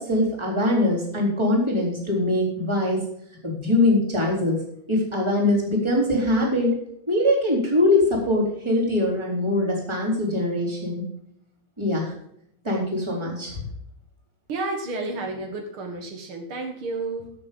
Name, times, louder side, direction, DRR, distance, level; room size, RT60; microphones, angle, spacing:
voice 1, 0.0-3.0 3.4-4.6 4.9-6.8 7.1-11.1 11.8-12.1 12.6-13.6, left 1 dB, 10° right, -1 dB, 3.7 m, -22 dB
voice 2, 14.5-17.3, right 3 dB, 75° right, 4 dB, 2.5 m, -31 dB
15.5 x 6.9 x 5.3 m, 0.72 s
omnidirectional pair, 2.3 m